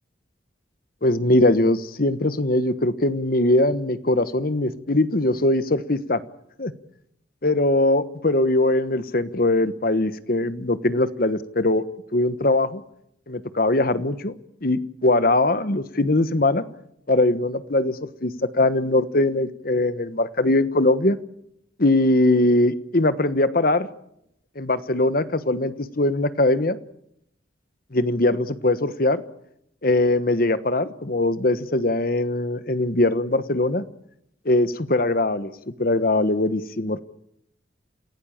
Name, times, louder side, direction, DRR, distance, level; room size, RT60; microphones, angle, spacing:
voice 1, 1.0-6.2 6.6-6.7 7.4-11.9 12.1-12.8 13.3-16.6 17.1-21.2 21.8-23.9 24.6-26.8 27.9-29.2 29.8-33.8 34.4-35.5 35.8-37.0, left 2 dB, 50° left, 13 dB, 1.2 m, -21 dB
28.0 x 17.0 x 8.7 m, 0.76 s
head